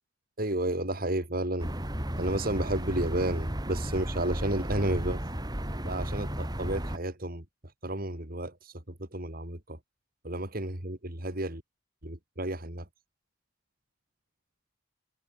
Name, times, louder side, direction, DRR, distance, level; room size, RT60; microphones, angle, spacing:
voice 1, 0.4-1.7 2.2-5.2 5.8-7.4 7.8-8.7 9.1-9.8 10.2-11.6 12.0-12.8, right 1 dB, 50° right, 4.0 m, -32 dB
sound 1, 1.6-7.0, equal, 20° right, 3.5 m, -34 dB
head